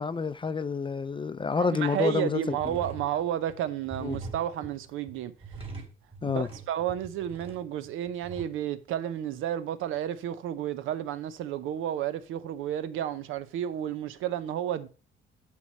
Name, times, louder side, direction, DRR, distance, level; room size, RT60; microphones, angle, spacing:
voice 1, 0.0-2.8 4.0-4.2 6.2-6.5, left 5 dB, 25° left, 0.4 m, -29 dB
voice 2, 1.6-5.3 6.2-14.9, right 11 dB, 85° right, 0.7 m, -32 dB
sound 1, 2.5-8.5, right 3 dB, 30° right, 2.8 m, -43 dB
8.3 x 3.3 x 5.3 m
cardioid pair, 90°, 20 cm